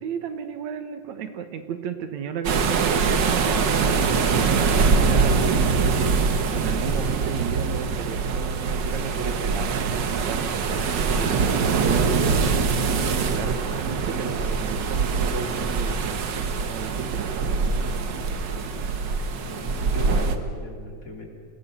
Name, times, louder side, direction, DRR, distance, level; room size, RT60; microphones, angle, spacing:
voice 1, 0.0-6.2 6.5-18.0, right 7 dB, 70° right, 9 dB, 2.5 m, -33 dB
sound 1, 2.4-20.4, right 5 dB, 55° right, 1.4 m, -23 dB
voice 2, 19.4-21.3, left 1 dB, 25° left, 1 dB, 3.7 m, -37 dB
27.5 x 19.0 x 6.9 m, 2.1 s
omnidirectional pair, 3.4 m